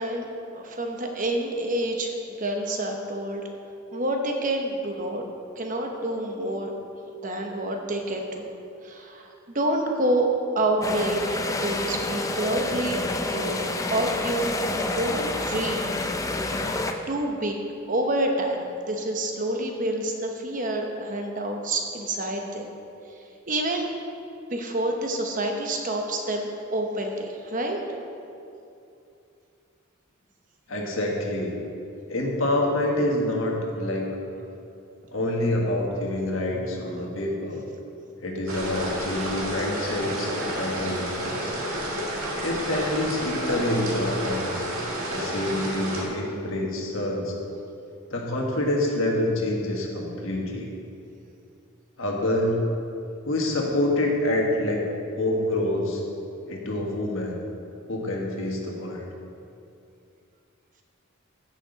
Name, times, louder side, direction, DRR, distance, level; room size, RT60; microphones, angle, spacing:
voice 1, 0.0-3.4 3.9-5.2 5.6-6.7 7.2-8.5 8.8-10.3 10.5-11.2 11.5-13.6 13.9-14.6 14.9-15.9 17.1-17.6 17.9-22.7 23.5-23.9 24.5-27.8, right 1 dB, 40° right, 2 dB, 0.9 m, -28 dB
sound 1, 10.8-16.9, left 2 dB, 15° left, 0.4 m, -28 dB
voice 2, 30.7-31.5 32.1-34.1 35.1-37.6 38.2-41.5 42.4-44.7 45.1-47.4 48.1-50.7 52.0-52.6 53.2-54.8 55.1-56.0 56.5-57.4 57.9-59.1, left 1 dB, 65° left, -1 dB, 1.6 m, -27 dB
sound 2, 38.5-46.0, right 1 dB, 80° right, 1.9 m, -30 dB
14.5 x 6.2 x 4.0 m, 2.6 s
head